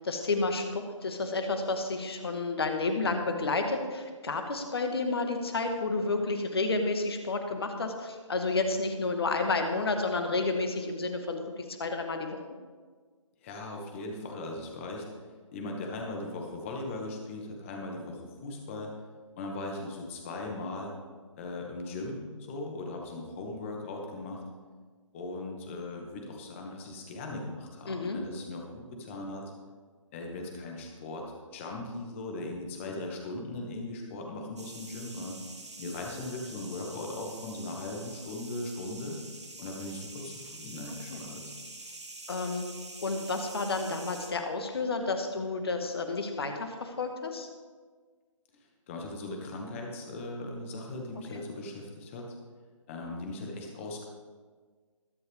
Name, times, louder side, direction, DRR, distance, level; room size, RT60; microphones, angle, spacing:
voice 1, 0.0-12.4 27.9-28.2 41.1-41.2 42.3-42.7 43.0-47.5 51.3-51.4, left 3 dB, 50° left, 5 dB, 1.9 m, -31 dB
voice 2, 13.4-15.0 15.5-18.9 19.4-20.9 21.4-24.4 25.1-29.5 30.1-31.2 31.5-35.4 35.8-39.2 39.6-41.4 48.9-52.4 52.9-54.0, left 2 dB, 25° left, 1 dB, 2.1 m, -38 dB
sound 1, 34.6-44.3, right 2 dB, 55° right, 2.1 m, -46 dB
21.5 x 7.9 x 3.6 m, 1.5 s
figure-of-eight pair, 145°, 17 cm